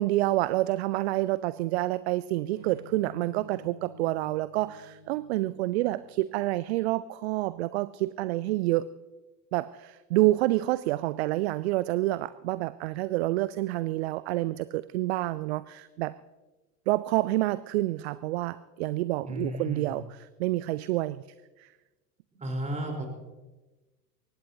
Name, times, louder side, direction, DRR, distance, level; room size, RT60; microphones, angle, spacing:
voice 1, 0.0-8.9 9.5-16.1 16.9-21.2 21.6-21.7, right 17 dB, 45° right, 17 dB, 0.5 m, -28 dB
sound 1, 2.5-6.4, left 4 dB, 80° right, 4.4 m, -52 dB
voice 2, 19.2-20.0 22.4-23.1, equal, 15° right, 1 dB, 4.0 m, -33 dB
23.0 x 19.0 x 2.8 m, 1.2 s
figure-of-eight pair, 80°, 47 cm